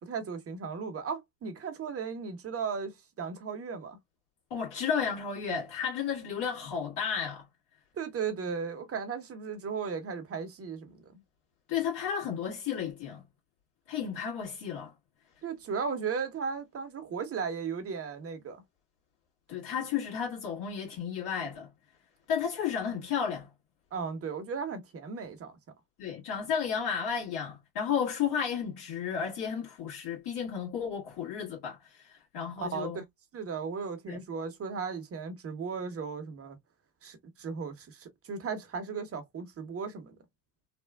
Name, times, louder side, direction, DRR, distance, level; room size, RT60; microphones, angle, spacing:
voice 1, 0.0-4.0 7.9-11.2 15.4-18.6 23.9-25.6 32.6-33.0 33.3-36.6 37.0-40.2, right 5 dB, 30° right, 1.1 m, -36 dB
voice 2, 4.5-7.5 11.7-13.2 13.9-14.9 19.5-21.7 22.3-23.5 26.0-33.0 34.1-34.2, left 7 dB, 50° left, 1.9 m, -33 dB
3.4 x 2.4 x 2.3 m
hypercardioid pair, 85°, 49 cm